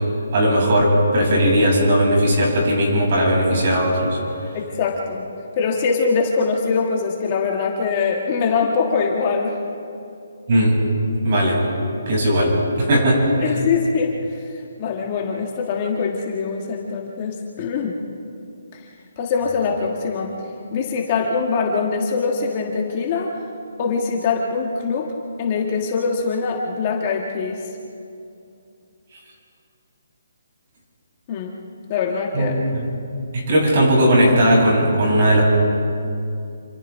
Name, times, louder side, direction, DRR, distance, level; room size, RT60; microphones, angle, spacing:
voice 1, 0.3-4.2 10.5-10.8 11.2-11.7 12.0-13.5 32.3-32.9 33.3-35.4, equal, 40° right, -3 dB, 7.0 m, -17 dB
voice 2, 4.5-5.2 5.5-9.6 13.4-14.1 14.8-18.0 18.7-18.8 19.2-20.3 20.7-23.3 23.8-25.1 25.4-27.6 31.3-31.6 31.9-32.6, left 5 dB, 25° left, 0 dB, 1.4 m, -23 dB
27.5 x 26.0 x 3.6 m, 2.5 s
hypercardioid pair, 175°, 0 cm